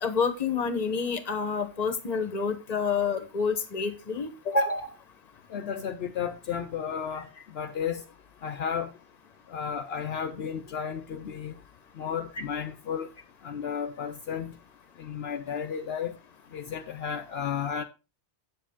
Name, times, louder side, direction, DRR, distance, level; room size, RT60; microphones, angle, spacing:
voice 1, 0.0-4.9, left 4 dB, 40° left, 1.0 m, -28 dB
voice 2, 5.5-7.3 7.5-8.0 8.4-8.9 9.5-11.5 12.0-13.1 13.4-14.5 15.0-16.2 16.5-17.8, left 7 dB, 70° left, 0.9 m, -33 dB
7.8 x 7.5 x 3.6 m
omnidirectional pair, 1.1 m